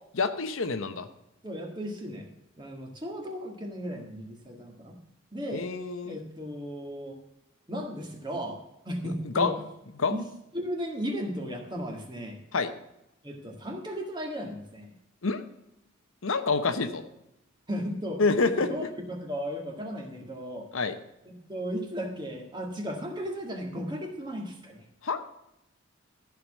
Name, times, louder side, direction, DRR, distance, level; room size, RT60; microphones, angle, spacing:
voice 1, 0.1-1.1 5.5-6.2 9.3-9.5 10.0-10.1 12.5-12.7 15.2-15.4 16.2-17.0 18.2-18.7 20.7-21.0 25.0-25.2, left 4 dB, 70° left, 9 dB, 0.9 m, -27 dB
voice 2, 1.4-2.3 2.6-5.0 5.3-5.7 6.1-7.2 7.7-9.7 10.1-12.4 13.2-14.9 16.8-17.0 17.7-20.7 21.2-24.9, equal, 20° right, 2 dB, 1.8 m, -35 dB
14.0 x 4.9 x 7.2 m, 0.86 s
head